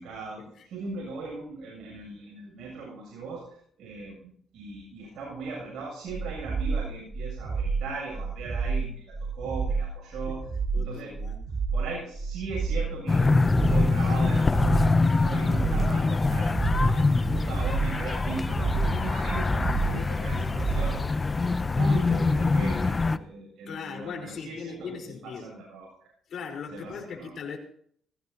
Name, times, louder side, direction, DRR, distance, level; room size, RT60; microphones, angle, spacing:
voice 1, 0.0-10.5 10.7-11.2 11.7-21.3 21.6-26.1 26.7-27.3, right 3 dB, 75° right, -3 dB, 8.0 m, -39 dB
sound 1, 6.1-21.0, right 4 dB, 40° right, 1.5 m, -30 dB
voice 2, 10.7-11.4 23.7-25.5 26.3-27.6, left 5 dB, 65° left, 2 dB, 4.7 m, -39 dB
sound 2, 13.1-23.2, left 3 dB, 25° left, 0.7 m, -24 dB
20.0 x 16.5 x 3.0 m, 0.63 s
cardioid pair, 90°, 0 cm